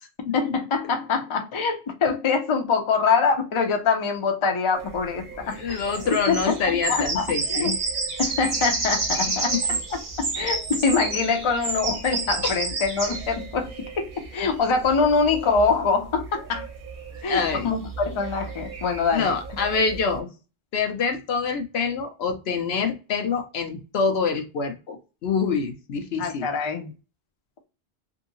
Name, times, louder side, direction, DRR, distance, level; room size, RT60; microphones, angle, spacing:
voice 1, 0.3-5.8 6.3-6.6 6.9-7.2 7.5-7.7 8.2-16.7 17.2-19.3 26.2-26.9, left 5 dB, 40° left, 0.5 m, -24 dB
sound 1, 4.7-20.2, right 3 dB, 55° right, 0.9 m, -31 dB
voice 2, 5.4-7.8 9.3-9.6 12.4-12.5 17.3-17.8 19.1-20.3 20.7-25.0 25.2-26.5, left 5 dB, 85° left, 0.9 m, -26 dB
2.7 x 2.6 x 2.5 m
omnidirectional pair, 1.0 m